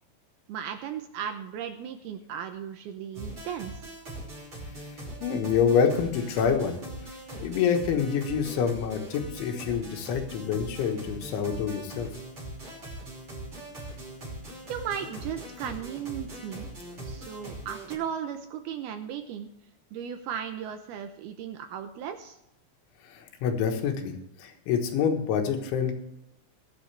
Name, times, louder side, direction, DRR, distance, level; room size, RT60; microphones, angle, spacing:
voice 1, 0.5-3.9 14.7-16.7 17.0-19.5 19.9-22.4, right 8 dB, 80° right, 7 dB, 2.3 m, -36 dB
sound 1, 3.1-17.9, right 1 dB, 30° right, 6.1 m, -41 dB
voice 2, 5.2-6.8 7.1-12.1 23.0-25.9, left 7 dB, 85° left, 4 dB, 3.9 m, -27 dB
23.0 x 8.1 x 3.4 m, 0.85 s
omnidirectional pair, 5.3 m